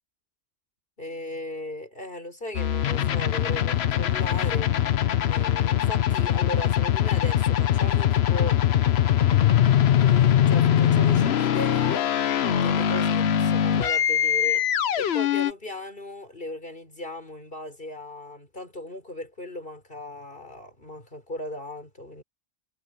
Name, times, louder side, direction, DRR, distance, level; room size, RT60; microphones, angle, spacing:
voice 1, 1.0-4.7 5.2-8.6 9.0-12.1 12.5-14.6 15.0-22.2, left 1 dB, 50° left, 5.9 m, -37 dB
sound 1, 2.5-15.5, left 10 dB, 65° left, 1.0 m, -22 dB
omnidirectional pair, 1.2 m